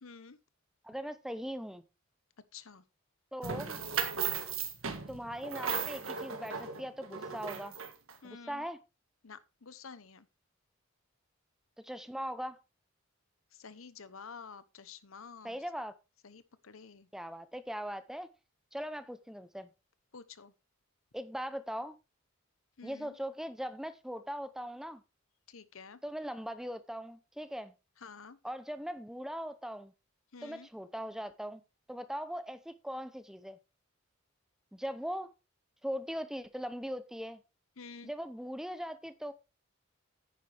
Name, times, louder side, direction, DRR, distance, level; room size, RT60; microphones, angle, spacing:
voice 1, 0.0-0.4 2.5-2.8 8.2-8.7 9.2-10.3 13.5-15.6 16.2-17.1 20.1-20.5 22.8-23.2 25.5-26.0 28.0-28.4 30.3-30.7 37.8-38.1, left 5 dB, 75° left, 0.9 m, -50 dB
voice 2, 0.8-1.8 3.3-3.8 5.1-7.7 8.2-8.8 11.8-12.6 15.4-15.9 17.1-18.3 18.7-19.7 21.1-21.9 22.8-25.0 26.0-27.7 28.4-29.9 30.4-31.6 31.9-33.6 34.7-35.3 35.8-37.4 38.0-39.3, equal, ahead, 0.6 m, -40 dB
sound 1, 3.4-8.1, right 6 dB, 75° right, 1.7 m, -36 dB
10.0 x 9.2 x 3.4 m
head